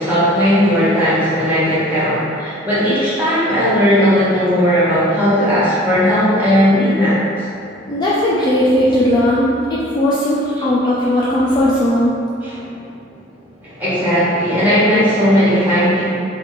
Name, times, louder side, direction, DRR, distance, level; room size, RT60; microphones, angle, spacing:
voice 1, 0.0-7.5 10.6-10.7 12.4-12.7 13.6-16.1, equal, 10° right, -12 dB, 1.1 m, -16 dB
voice 2, 7.9-12.1, left 1 dB, 25° left, -8 dB, 0.3 m, -16 dB
3.4 x 2.4 x 3.0 m, 2.6 s
head